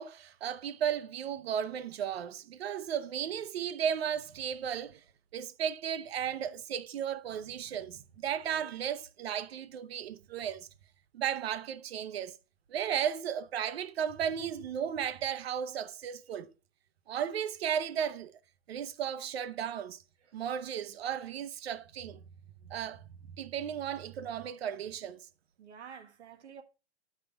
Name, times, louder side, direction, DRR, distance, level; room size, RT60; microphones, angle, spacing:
voice 1, 0.0-5.0 5.3-10.7 11.1-12.4 12.7-16.5 17.1-18.3 18.7-20.0 20.3-22.2 22.7-23.0 23.4-25.2, right 8 dB, 65° right, 0.9 m, -35 dB
voice 2, 25.6-26.6, right 7 dB, 85° right, 1.7 m, -50 dB
9.9 x 5.9 x 3.5 m
hypercardioid pair, 170°, 33 cm